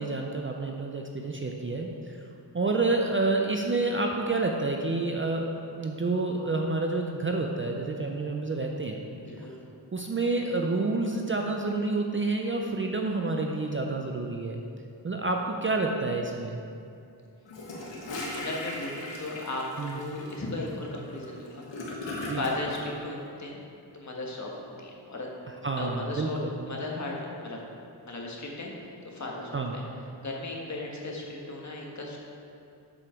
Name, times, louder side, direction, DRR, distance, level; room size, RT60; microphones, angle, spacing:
voice 1, 0.0-2.3 2.5-5.4 5.8-9.0 9.4-9.5 9.9-14.6 15.0-16.6 19.8-20.0 22.2-22.4 25.6-26.5 29.5-29.7, right 3 dB, 30° right, 2 dB, 0.5 m, -29 dB
voice 2, 9.2-9.5 18.3-19.6 19.9-21.7 22.4-23.6 23.9-25.3 25.8-26.4 26.7-27.6 28.0-28.7 29.0-29.8 30.2-32.2, left 2 dB, 40° left, -1 dB, 1.3 m, -36 dB
Gurgling / Toilet flush, 17.5-22.8, left 1 dB, 80° left, 1.5 m, -38 dB
7.7 x 7.1 x 4.4 m, 2.6 s
wide cardioid pair, 130°, 43 cm